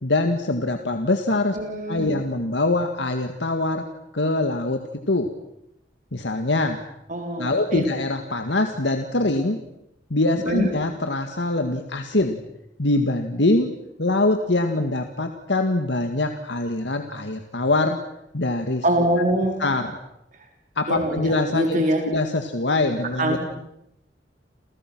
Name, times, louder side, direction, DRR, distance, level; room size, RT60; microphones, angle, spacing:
voice 1, 0.0-1.6 1.9-3.9 4.1-5.3 6.1-6.8 7.4-9.6 10.1-12.4 12.8-18.0 18.3-18.8 19.6-19.9 20.8-23.4, left 2 dB, 75° left, 6 dB, 2.0 m, -23 dB
voice 2, 1.5-2.1 7.1-7.8 10.4-10.7 18.8-19.6 20.9-22.0 23.2-23.4, right 1 dB, 45° right, 3 dB, 4.7 m, -24 dB
29.0 x 29.0 x 6.2 m, 0.82 s
head